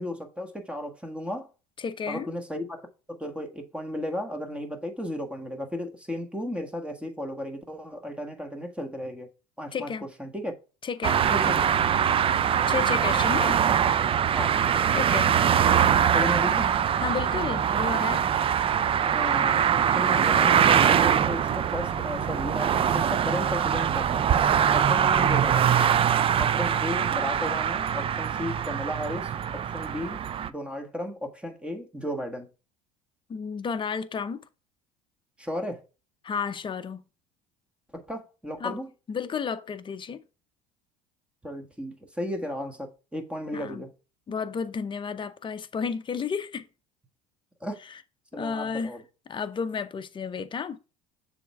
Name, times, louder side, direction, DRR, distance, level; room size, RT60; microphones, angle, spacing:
voice 1, 0.0-1.5 2.1-9.3 9.6-9.9 10.2-10.5 11.3-11.7 14.3-14.6 16.1-16.7 19.1-19.6 19.9-24.3 24.7-25.7 26.4-32.5 35.4-35.8 37.9-38.9 41.4-43.9 47.6-47.8 48.3-49.0, left 1 dB, 5° right, 1.5 m, -34 dB
voice 2, 1.8-2.3 9.7-10.0 10.8-11.2 12.7-13.6 14.9-15.4 17.0-18.2 33.3-34.4 36.2-37.0 38.6-38.8 39.1-40.2 43.5-43.8 44.3-46.7 48.3-48.9 49.3-50.8, left 6 dB, 30° left, 0.7 m, -32 dB
sound 1, 11.0-30.5, right 8 dB, 30° right, 0.4 m, -23 dB
6.9 x 3.5 x 4.7 m
hypercardioid pair, 80°, 17 cm